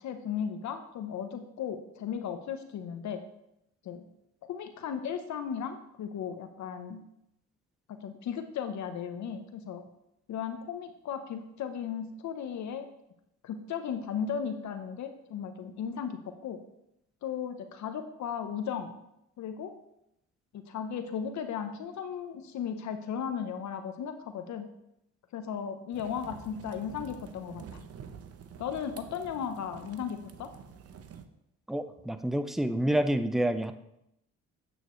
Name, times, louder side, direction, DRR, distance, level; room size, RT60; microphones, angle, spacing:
voice 1, 0.0-3.2 3.8-4.1 4.4-7.0 7.9-9.8 10.3-12.9 13.4-16.6 17.2-18.9 19.4-19.8 20.5-24.7 25.3-27.9 28.6-30.5, left 7 dB, 70° left, 7 dB, 0.9 m, -36 dB
sound 1, 25.9-31.3, right 7 dB, 50° right, 0.8 m, -48 dB
voice 2, 31.7-33.7, right 1 dB, ahead, 9 dB, 0.5 m, -28 dB
8.9 x 7.8 x 3.1 m, 0.81 s
cardioid pair, 90°, 30 cm